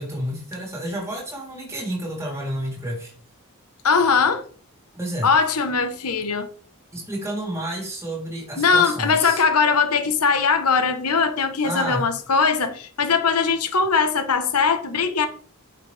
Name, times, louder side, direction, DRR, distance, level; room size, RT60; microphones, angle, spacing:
voice 1, 0.0-3.1 4.9-5.3 6.9-9.4 11.6-12.1, right 1 dB, 15° right, 3.4 m, -30 dB
voice 2, 3.8-4.4 5.2-6.5 8.6-15.3, left 5 dB, 90° left, 1.1 m, -20 dB
9.2 x 6.5 x 3.4 m
head